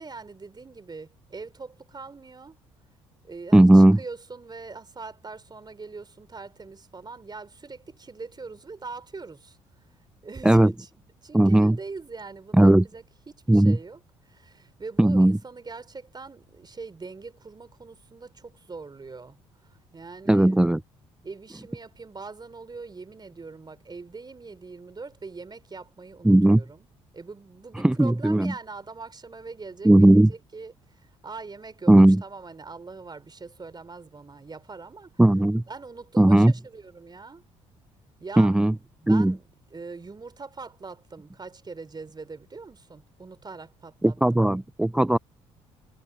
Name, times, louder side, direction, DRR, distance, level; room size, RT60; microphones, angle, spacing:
voice 1, 0.0-2.6 3.2-9.6 10.2-10.9 11.2-19.4 19.6-20.6 21.2-26.9 27.1-35.1 35.7-37.4 38.2-38.6 39.0-39.4 39.7-44.4, right 4 dB, 30° right, 4.0 m, -42 dB
voice 2, 3.5-4.0 10.4-10.7 11.3-11.8 12.5-12.9 13.5-13.8 15.0-15.4 20.3-20.8 26.2-26.6 27.8-28.5 29.8-30.3 31.9-32.2 35.2-35.6 36.2-36.5 38.4-38.7 39.1-39.3 44.0-45.2, right 1 dB, 5° right, 0.4 m, -17 dB
hypercardioid pair, 50°, 15 cm